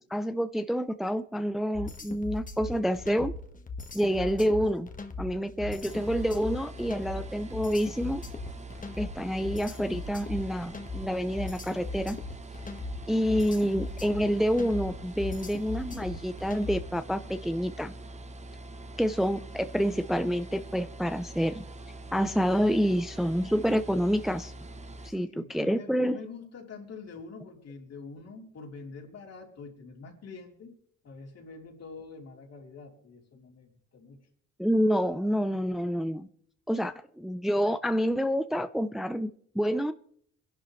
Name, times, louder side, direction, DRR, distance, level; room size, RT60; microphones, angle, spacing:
voice 1, 0.0-3.3 3.9-4.9 5.2-8.2 9.0-12.2 13.1-17.9 19.0-21.6 22.1-24.5 25.0-26.2 34.6-36.3 36.7-39.9, equal, ahead, 10 dB, 0.6 m, -28 dB
sound 1, 1.7-17.0, left 3 dB, 25° left, 1.5 m, -39 dB
sound 2, 5.8-25.1, right 2 dB, 25° right, 0.9 m, -44 dB
voice 2, 25.0-30.8 31.0-34.2, left 4 dB, 55° left, 1 dB, 3.5 m, -46 dB
24.0 x 11.5 x 3.2 m, 0.63 s
cardioid pair, 90°, 30 cm